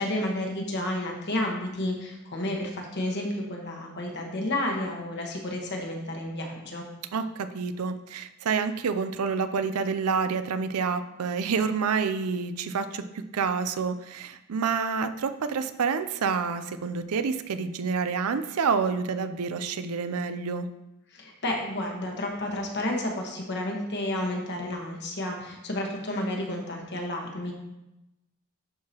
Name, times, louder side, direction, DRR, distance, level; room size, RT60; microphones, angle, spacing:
voice 1, 0.0-6.8 21.1-27.5, left 1 dB, 50° left, 1 dB, 1.3 m, -31 dB
voice 2, 7.1-20.7, right 5 dB, 80° right, 11 dB, 0.5 m, -28 dB
12.0 x 4.8 x 2.9 m, 0.91 s
head